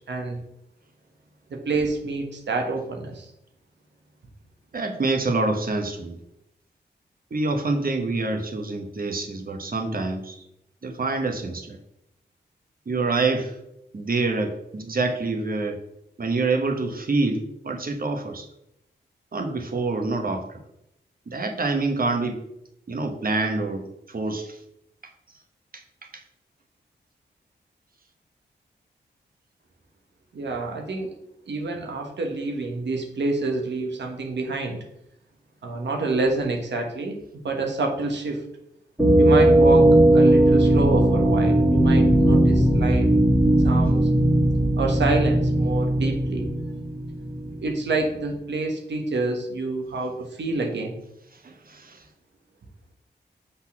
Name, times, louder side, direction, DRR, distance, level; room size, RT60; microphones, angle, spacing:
voice 1, 0.1-0.4 1.5-3.3 30.3-31.1 31.5-34.8 35.6-37.2 37.4-38.4 39.2-43.1 43.6-44.0 44.8-46.5 47.6-51.0, right 3 dB, 75° right, 2 dB, 1.4 m, -27 dB
voice 2, 4.7-6.2 7.3-10.4 10.8-11.8 12.9-13.6 13.9-15.8 16.2-18.5 19.3-20.6 21.3-22.4 22.9-24.6 25.7-25.8 26.1-26.2 51.4-52.0, right 3 dB, 50° right, 4 dB, 1.3 m, -26 dB
sound 1, 39.0-47.7, right 1 dB, 10° right, 2.2 m, -18 dB
6.1 x 4.1 x 6.0 m, 0.80 s
cardioid pair, 55°, 18 cm